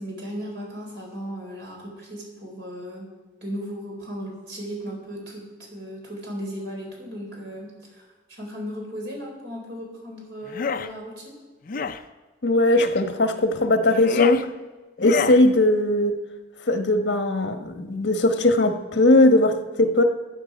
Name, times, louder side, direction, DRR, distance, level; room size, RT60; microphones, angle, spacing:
voice 1, 0.0-3.2 3.4-11.4, equal, 75° right, -1 dB, 4.3 m, -36 dB
sound 1, 10.5-10.9 11.7-12.0 12.8-13.0 13.8-14.4 15.0-15.4, left 5 dB, 50° left, 0.5 m, -28 dB
voice 2, 12.4-14.4 15.0-16.1 16.7-20.0, left 2 dB, 70° left, 6 dB, 1.2 m, -19 dB
14.5 x 9.0 x 5.1 m, 1.3 s
head